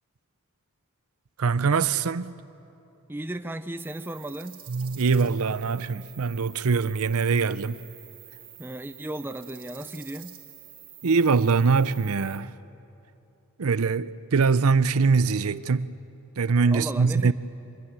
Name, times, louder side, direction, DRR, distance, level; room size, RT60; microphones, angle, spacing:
voice 1, 1.4-2.3 4.7-7.8 11.0-12.5 13.6-15.9 16.4-17.3, right 5 dB, 70° right, 0.6 m, -23 dB
voice 2, 3.1-4.6 8.6-10.4 16.7-17.3, right 1 dB, 10° right, 0.5 m, -35 dB
sound 1, 3.8-12.4, right 12 dB, 40° right, 2.5 m, -48 dB
25.0 x 22.0 x 8.9 m
head